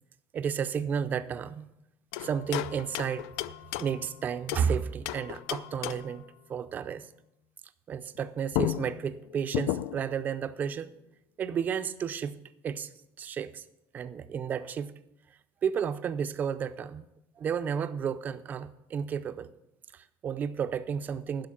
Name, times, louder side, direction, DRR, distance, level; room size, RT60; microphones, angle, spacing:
voice 1, 0.3-1.7 2.2-3.3 3.8-7.1 7.9-10.9 11.4-13.7 13.9-15.0 15.3-17.1 17.4-19.5 19.9-21.5, right 7 dB, 25° right, 12 dB, 0.5 m, -32 dB
sound 1, 2.1-4.7 5.1-6.2 8.2-8.3 8.5-10.2, left 14 dB, 80° left, 0.5 m, -34 dB
11.5 x 5.7 x 8.4 m, 0.85 s
cardioid pair, 175°, 7 cm